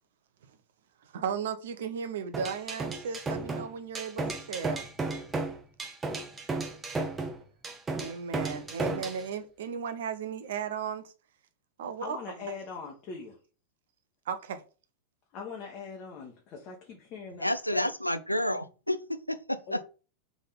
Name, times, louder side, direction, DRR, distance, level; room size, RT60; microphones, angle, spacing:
voice 1, 1.0-4.8 8.0-11.1 11.8-12.2 14.3-14.6, right 7 dB, 60° right, 0.7 m, -35 dB
sound 1, 2.3-9.2, right 3 dB, 15° right, 0.8 m, -34 dB
voice 2, 12.0-13.4 15.3-17.9 19.7-19.8, left 5 dB, 35° left, 1.1 m, -41 dB
voice 3, 17.4-19.8, left 1 dB, 90° left, 0.4 m, -30 dB
3.7 x 3.5 x 4.1 m
figure-of-eight pair, 90°, 0 cm